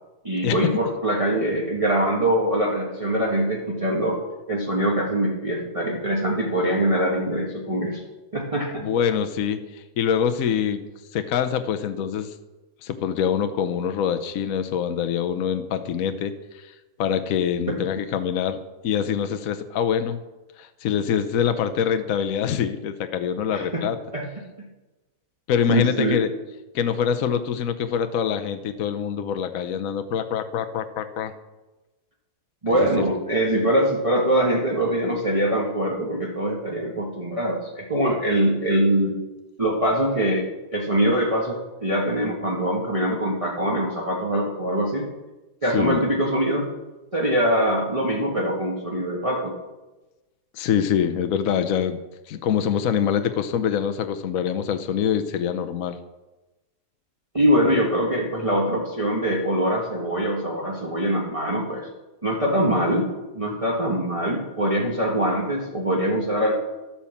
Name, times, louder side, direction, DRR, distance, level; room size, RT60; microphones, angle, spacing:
voice 1, 0.2-4.2 4.5-8.0 8.3-8.9 17.7-17.8 23.5-23.8 24.1-24.2 25.7-26.2 32.6-39.2 39.6-40.5 40.7-45.1 45.6-46.7 47.1-49.5 57.3-61.9 62.2-63.1 63.3-66.5, right 1 dB, 20° right, -3 dB, 1.5 m, -23 dB
voice 2, 8.8-10.8 11.1-12.3 12.8-16.7 17.0-20.2 20.6-24.0 25.5-26.3 26.7-31.3 32.7-32.9 45.7-46.0 50.5-52.0 52.3-56.0, left 8 dB, 65° left, 9 dB, 1.1 m, -25 dB
11.5 x 8.7 x 7.1 m, 1.1 s
omnidirectional pair, 1.7 m